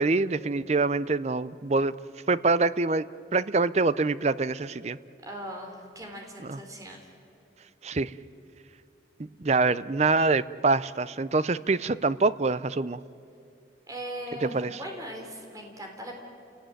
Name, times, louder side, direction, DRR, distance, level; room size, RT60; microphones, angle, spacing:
voice 1, 0.0-1.9 2.3-3.1 3.3-5.0 6.5-6.6 7.8-8.1 9.2-13.0 14.4-14.7, right 3 dB, 40° right, 16 dB, 0.6 m, -25 dB
voice 2, 5.2-7.1 13.9-16.2, equal, 20° right, 2 dB, 3.7 m, -39 dB
30.0 x 18.0 x 9.2 m, 2.7 s
head